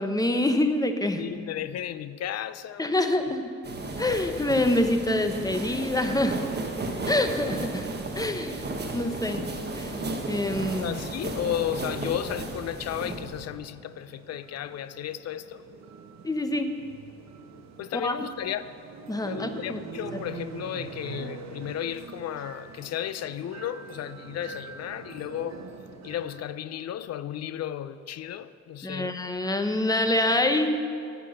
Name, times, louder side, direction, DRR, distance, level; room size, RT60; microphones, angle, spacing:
voice 1, 0.0-1.2 2.8-3.5 4.0-6.4 7.1-7.9 8.2-8.6 8.9-9.5 9.8-10.0 10.3-11.0 16.2-16.7 17.9-18.1 19.1-19.8 20.1-20.2 28.8-30.7, left 1 dB, 10° left, 0.8 m, -26 dB
voice 2, 1.2-2.9 10.8-15.6 17.8-18.6 19.2-25.6 26.0-29.2, left 11 dB, 55° left, 0.5 m, -34 dB
sound 1, 3.6-13.5, right 2 dB, 35° right, 1.3 m, -34 dB
sound 2, 11.0-26.5, right 6 dB, 60° right, 0.9 m, -45 dB
9.1 x 8.4 x 6.4 m
cardioid pair, 90°, 30 cm